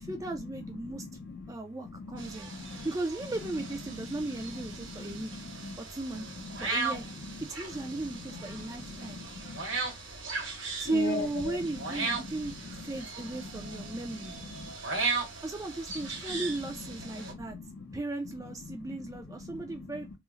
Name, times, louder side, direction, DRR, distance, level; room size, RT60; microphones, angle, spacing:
voice 1, 0.0-1.1 1.5-2.5 2.8-5.3 5.8-6.3 6.6-7.1 7.5-9.2 10.8-12.5 12.8-14.3 15.4-17.6 17.9-20.2, right 2 dB, 15° right, 0.3 m, -36 dB
voice 2, 0.8-1.5 1.9-2.3 2.6-2.9 4.0-4.1 4.8-5.8 6.2-6.3 8.3-9.6 10.9-11.6 12.2-12.3 12.7-12.8 13.7-14.2 14.6-14.7 17.2-17.9 18.6-19.0 19.4-19.9, left 3 dB, 50° left, 0.5 m, -41 dB
sound 1, 2.2-17.3, right 4 dB, 70° right, 1.1 m, -38 dB
3.1 x 2.0 x 3.5 m
head